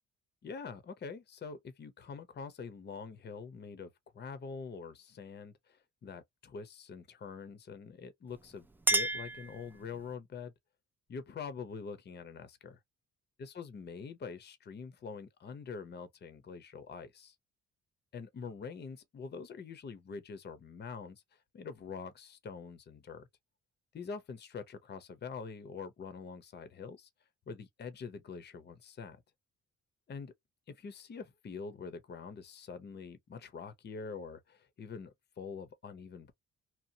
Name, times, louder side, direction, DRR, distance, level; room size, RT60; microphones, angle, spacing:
voice 1, 0.4-10.5 11.1-12.8 13.4-17.4 18.1-23.3 23.9-27.1 27.5-29.2 30.1-30.3 30.7-36.3, left 5 dB, 35° left, 0.6 m, -45 dB
Chink clink, 8.3-10.2, right 2 dB, 5° right, 0.3 m, -33 dB
2.8 x 2.0 x 2.6 m
cardioid pair, 90°, 30 cm